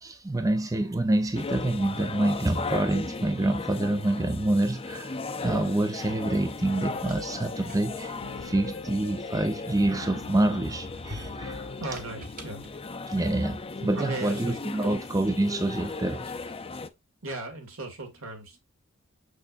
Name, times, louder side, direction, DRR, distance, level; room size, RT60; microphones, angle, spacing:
voice 1, 0.0-5.2 5.4-8.2 8.4-11.7 13.1-16.5, right 1 dB, 15° right, 0.5 m, -27 dB
sound 1, 1.3-16.9, left 3 dB, 25° left, 0.6 m, -37 dB
sound 2, 6.3-12.4, left 4 dB, 65° left, 0.7 m, -43 dB
sound 3, 6.9-9.9 10.4-13.8, equal, 45° right, 1.5 m, -46 dB
voice 2, 11.8-12.6 14.0-14.9 17.2-18.6, right 2 dB, 70° right, 2.3 m, -37 dB
6.6 x 6.3 x 2.6 m
head